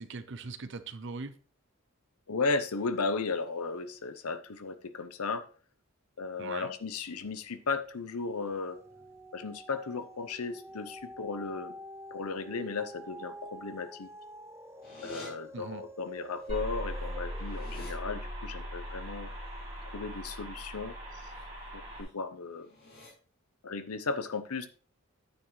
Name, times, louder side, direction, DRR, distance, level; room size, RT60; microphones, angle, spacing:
voice 1, 0.0-1.4 6.4-6.7 15.5-15.8, right 4 dB, 55° right, 11 dB, 0.7 m, -40 dB
voice 2, 2.3-5.5 6.2-8.8 9.3-11.7 12.1-14.1 15.0-19.3 19.9-21.2 21.7-22.7 23.6-24.7, left 4 dB, 85° left, 11 dB, 0.8 m, -35 dB
sound 1, 7.0-7.6 7.9-20.4 21.0-21.1, right 1 dB, 10° right, 0.4 m, -49 dB
sound 2, 14.8-15.3 16.5-16.6 16.9-17.9 21.1-21.4 21.8-22.1 22.6-23.1, left 1 dB, 45° left, 5.0 m, -49 dB
sound 3, 16.5-22.0, equal, 30° right, 4.1 m, -39 dB
9.1 x 7.2 x 3.2 m, 0.41 s
head